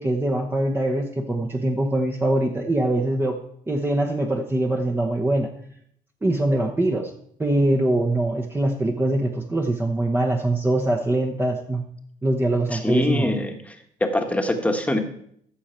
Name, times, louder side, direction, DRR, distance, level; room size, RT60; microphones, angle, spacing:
voice 1, 0.0-3.4 3.7-5.5 6.2-7.1 7.4-11.8 12.2-13.4, right 1 dB, 15° right, 1 dB, 0.9 m, -23 dB
voice 2, 12.7-13.7 14.0-15.0, left 1 dB, 10° left, 4 dB, 1.3 m, -23 dB
14.0 x 6.4 x 4.4 m, 0.66 s
cardioid pair, 110°, 17 cm